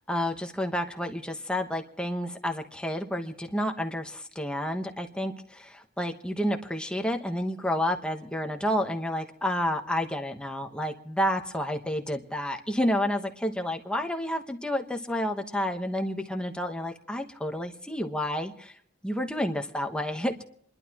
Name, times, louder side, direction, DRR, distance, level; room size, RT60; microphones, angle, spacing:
voice 1, 0.1-18.7 19.0-20.5, equal, 5° left, 4 dB, 1.1 m, -30 dB
29.0 x 11.5 x 3.0 m, 0.68 s
head